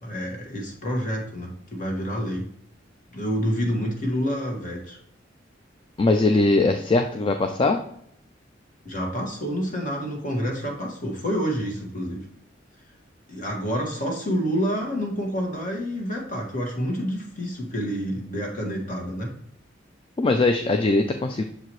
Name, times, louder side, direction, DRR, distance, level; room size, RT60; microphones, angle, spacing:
voice 1, 0.0-2.5 3.1-5.0 8.8-12.3 13.3-19.3, equal, 45° left, 0 dB, 1.6 m, -28 dB
voice 2, 6.0-7.8 20.2-21.4, left 2 dB, 30° left, 6 dB, 0.4 m, -21 dB
6.9 x 4.7 x 3.0 m, 0.68 s
head